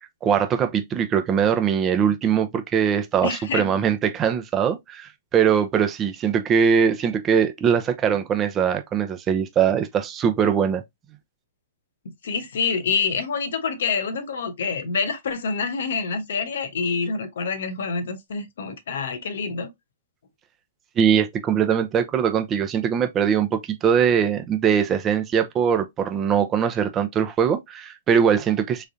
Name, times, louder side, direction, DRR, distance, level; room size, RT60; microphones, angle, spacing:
voice 1, 0.2-10.8 21.0-28.8, right 7 dB, 20° right, 0.6 m, -21 dB
voice 2, 3.2-3.7 12.2-19.7, left 5 dB, 75° left, 1.0 m, -27 dB
3.6 x 3.2 x 2.6 m
hypercardioid pair, 140°, 0 cm